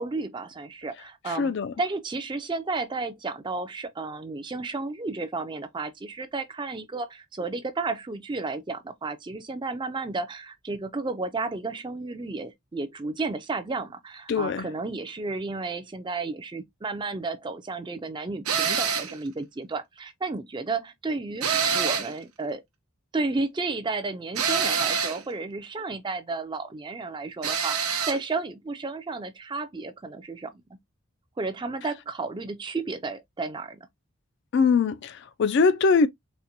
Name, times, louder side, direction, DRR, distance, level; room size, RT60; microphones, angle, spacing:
voice 1, 0.0-22.6 23.1-30.8 31.4-33.9, right 3 dB, 20° right, 0.4 m, -32 dB
voice 2, 1.4-1.7 14.3-14.7 34.5-36.1, left 4 dB, 55° left, 0.3 m, -22 dB
sound 1, 18.5-19.2 21.4-22.2 24.4-25.2 27.4-28.2, right 6 dB, 80° right, 0.8 m, -26 dB
4.2 x 2.1 x 2.5 m
head